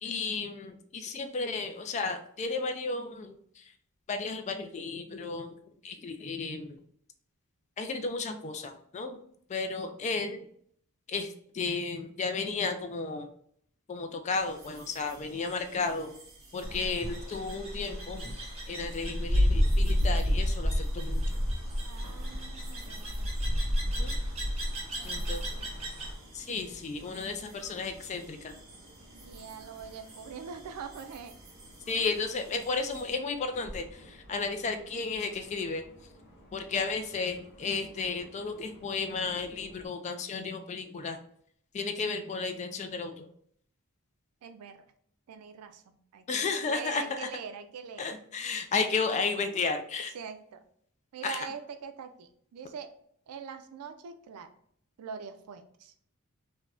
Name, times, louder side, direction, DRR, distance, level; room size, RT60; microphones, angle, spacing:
voice 1, 0.0-3.7 4.1-5.6 5.8-6.8 7.8-9.2 9.5-10.5 11.1-13.3 13.9-16.1 16.5-21.2 23.8-24.1 25.0-25.5 26.3-28.6 31.9-35.8 36.5-41.2 41.7-43.3 46.3-47.3 48.0-50.1 51.2-51.5, left 4 dB, 30° left, 7 dB, 0.3 m, -33 dB
sound 1, 14.3-33.2, right 2 dB, 60° right, 0.9 m, -54 dB
sound 2, 16.6-26.1, equal, 30° right, 0.9 m, -30 dB
sound 3, 21.3-39.9, equal, 50° left, 0.8 m, -53 dB
voice 2, 21.8-23.5 24.9-26.0 29.1-31.4 32.7-32.8 44.4-44.9 45.3-48.2 50.1-50.6 51.1-52.9 53.3-54.5 55.0-55.9, right 6 dB, 80° right, 8 dB, 0.4 m, -44 dB
3.3 x 2.2 x 2.4 m, 0.64 s
head